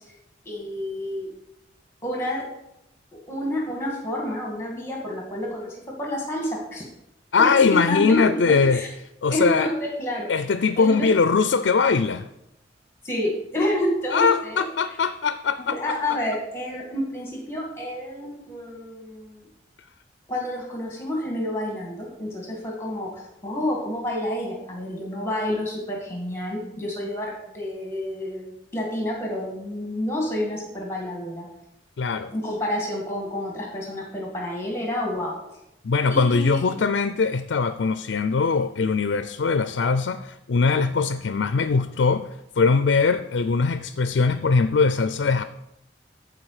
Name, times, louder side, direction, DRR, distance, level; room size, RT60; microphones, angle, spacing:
voice 1, 0.5-1.3 2.0-2.4 3.3-6.8 7.4-8.9 9.3-10.3 10.8-11.1 13.0-14.6 15.6-19.5 20.3-31.5 32.3-35.6 36.1-36.7, left 1 dB, 15° left, -1 dB, 2.2 m, -29 dB
voice 2, 7.3-8.8 9.2-9.7 10.3-12.3 14.1-15.7 32.0-32.3 35.8-42.3 42.6-45.4, left 5 dB, 70° left, 11 dB, 0.4 m, -21 dB
13.5 x 4.9 x 4.9 m, 0.85 s
head